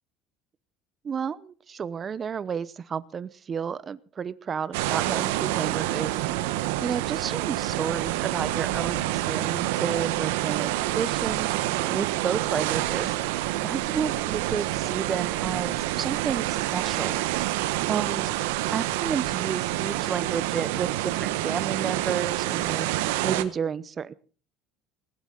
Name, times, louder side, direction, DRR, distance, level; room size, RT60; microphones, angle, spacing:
voice 1, 1.0-6.4 6.8-13.2 13.6-17.2 17.9-18.3 18.7-22.9 23.2-24.1, right 7 dB, 35° right, 18 dB, 0.7 m, -31 dB
sound 1, 4.7-23.4, right 15 dB, 80° right, 1.1 m, -27 dB
19.5 x 15.5 x 3.9 m, 0.39 s
hypercardioid pair, 75°, 0 cm